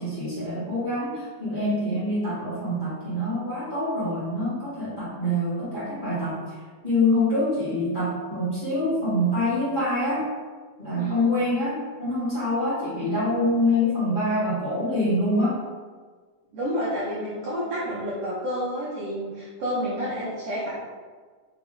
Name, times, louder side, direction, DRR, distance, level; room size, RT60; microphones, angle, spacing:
voice 1, 0.0-6.5 6.8-10.3 10.8-15.6, left 1 dB, 60° left, -12 dB, 0.5 m, -25 dB
voice 2, 10.9-11.3 16.5-20.7, equal, 80° right, -7 dB, 1.3 m, -29 dB
5.7 x 2.2 x 3.8 m, 1.5 s
omnidirectional pair, 3.7 m